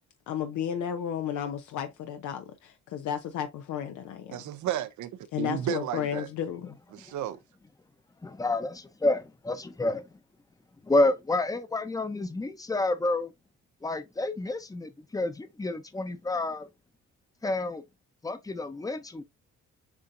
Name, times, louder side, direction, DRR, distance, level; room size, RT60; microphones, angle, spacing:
voice 1, 0.3-4.4 5.3-6.8, left 9 dB, 75° left, 0.6 m, -33 dB
voice 2, 4.3-5.1 5.4-6.3 6.9-7.4, right 12 dB, 75° right, 0.7 m, -32 dB
voice 3, 8.2-10.0 10.9-13.3 13.8-16.7 17.4-17.8 18.2-19.2, left 2 dB, 10° left, 0.7 m, -29 dB
7.0 x 2.7 x 2.6 m
cardioid pair, 90°, 30 cm